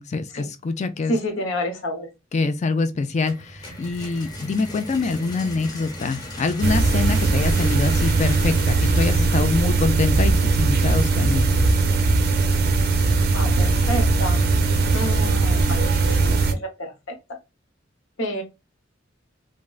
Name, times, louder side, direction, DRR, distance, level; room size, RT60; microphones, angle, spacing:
voice 1, 0.0-1.2 2.3-11.5, left 3 dB, 35° left, 0.4 m, -25 dB
voice 2, 1.1-2.1 13.3-14.4 14.9-17.2 18.2-18.4, equal, 75° left, 0.9 m, -29 dB
sound 1, 3.3-11.0, left 1 dB, 20° left, 0.9 m, -38 dB
sound 2, 6.6-16.5, right 3 dB, 55° right, 0.5 m, -19 dB
3.4 x 2.1 x 2.3 m
head